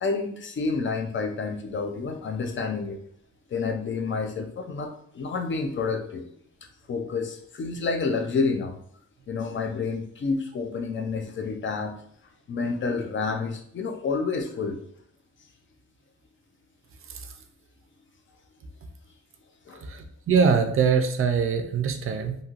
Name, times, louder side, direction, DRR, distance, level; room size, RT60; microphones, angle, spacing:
voice 1, 0.0-3.0 3.5-6.3 6.9-8.8 9.3-12.0 12.5-14.8 19.7-19.9, left 4 dB, 40° left, 4 dB, 0.4 m, -29 dB
voice 2, 19.9-22.4, right 6 dB, 45° right, 7 dB, 0.4 m, -23 dB
3.0 x 2.7 x 2.4 m, 0.65 s
wide cardioid pair, 135°, 31 cm